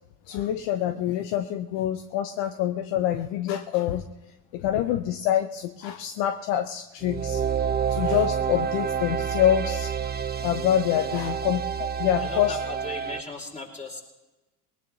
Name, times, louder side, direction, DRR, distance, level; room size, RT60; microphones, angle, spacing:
voice 1, 0.3-4.0 4.5-7.4 7.9-9.9 10.4-12.5, left 11 dB, 65° left, 9 dB, 0.9 m, -26 dB
sound 1, 7.0-13.2, right 7 dB, 20° right, 0.9 m, -28 dB
voice 2, 12.2-14.0, left 2 dB, 15° left, 0 dB, 4.3 m, -37 dB
20.0 x 19.5 x 2.9 m, 1.1 s
hypercardioid pair, 80°, 46 cm